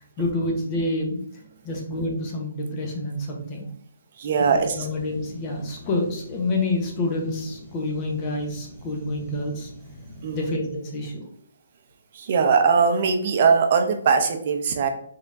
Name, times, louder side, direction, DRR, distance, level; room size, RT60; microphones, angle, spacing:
voice 1, 0.2-1.2 1.6-3.7 4.4-9.7 10.3-11.2, left 2 dB, 25° left, 1 dB, 1.0 m, -28 dB
voice 2, 4.2-4.9 10.2-10.5 12.1-14.9, right 5 dB, 40° right, 5 dB, 0.7 m, -20 dB
sound 1, 4.3-10.6, left 1 dB, 5° left, 1.2 m, -44 dB
4.3 x 3.6 x 2.7 m, 0.66 s
hypercardioid pair, 165°, 0 cm